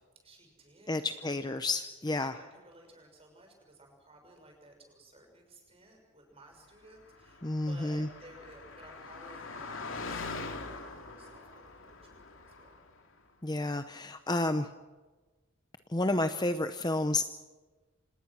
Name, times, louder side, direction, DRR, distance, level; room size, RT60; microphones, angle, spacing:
voice 1, 0.1-1.2 2.2-12.8, right 1 dB, 25° right, 2 dB, 6.3 m, -56 dB
voice 2, 0.9-2.4 7.4-8.1 13.4-14.7 15.9-17.2, left 2 dB, 20° left, 9 dB, 0.7 m, -30 dB
Car passing by, 7.0-13.0, left 3 dB, 65° left, 2.8 m, -43 dB
26.5 x 19.5 x 6.1 m, 1.2 s
head